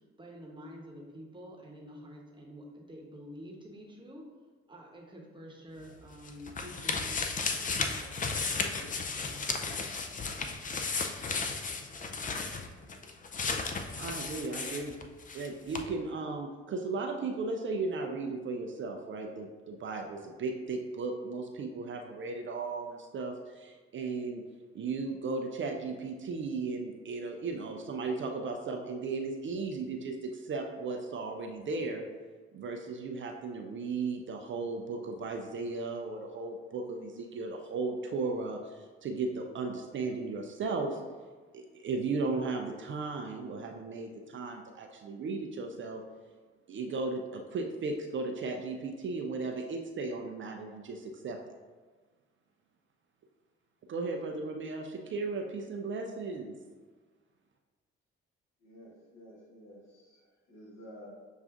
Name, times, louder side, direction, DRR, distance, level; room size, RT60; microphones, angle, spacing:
voice 1, 0.2-4.2 4.7-7.3 7.6-8.1 8.4-9.6, equal, 15° right, -2 dB, 1.0 m, -48 dB
sound 1, 5.8-15.5 15.7-15.8, left 4 dB, 25° left, 0.5 m, -34 dB
voice 2, 14.0-14.9 15.3-24.4 24.7-32.1 32.5-41.0 41.5-46.0 46.7-51.4 53.9-56.6, right 3 dB, 40° right, 2 dB, 0.5 m, -36 dB
voice 3, 58.6-61.1, equal, 55° left, -3 dB, 1.3 m, -52 dB
7.0 x 2.4 x 2.5 m, 1.4 s
hypercardioid pair, 50°, 31 cm